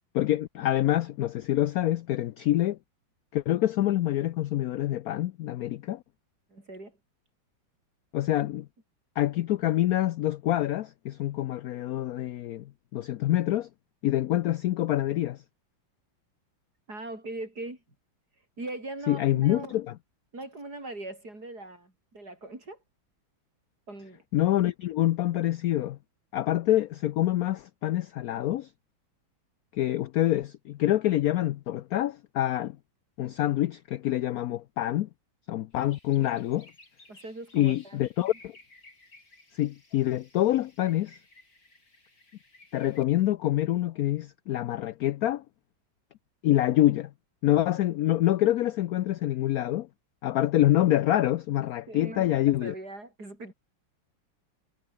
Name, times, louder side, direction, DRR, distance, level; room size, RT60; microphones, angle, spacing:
voice 1, 0.1-2.8 3.3-6.0 8.1-8.7 9.2-13.7 14.0-15.4 19.1-19.8 24.3-26.0 26.3-28.7 29.7-32.8 33.2-35.1 35.5-36.7 37.5-38.5 39.5-41.2 42.7-45.4 46.4-47.1 47.4-49.9 50.2-52.7, left 14 dB, 80° left, 0.8 m, -26 dB
voice 2, 6.5-7.0 16.9-17.8 18.6-19.8 20.3-22.8 23.9-24.2 37.1-38.3 51.9-53.5, right 2 dB, 50° right, 7.6 m, -40 dB
sound 1, 35.7-43.0, left 2 dB, 50° left, 6.5 m, -57 dB
omnidirectional pair, 2.2 m